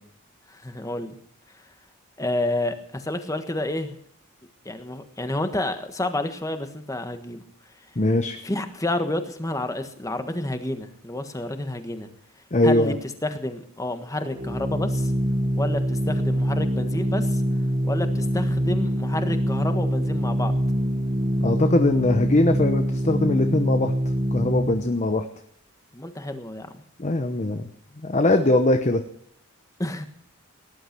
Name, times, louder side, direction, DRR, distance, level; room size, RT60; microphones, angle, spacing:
voice 1, 0.5-1.2 2.2-4.0 4.6-7.4 8.4-12.1 12.6-15.1 15.5-17.4 17.8-20.5 25.9-26.8 29.8-30.1, left 1 dB, 15° left, 8 dB, 1.5 m, -29 dB
voice 2, 8.0-8.4 12.5-13.0 21.4-23.9 24.3-25.2 27.0-27.6 28.0-29.0, left 2 dB, 35° left, 7 dB, 1.0 m, -21 dB
Organ, 14.2-25.0, equal, 30° right, 0.9 m, -24 dB
18.5 x 11.5 x 6.1 m, 0.70 s
head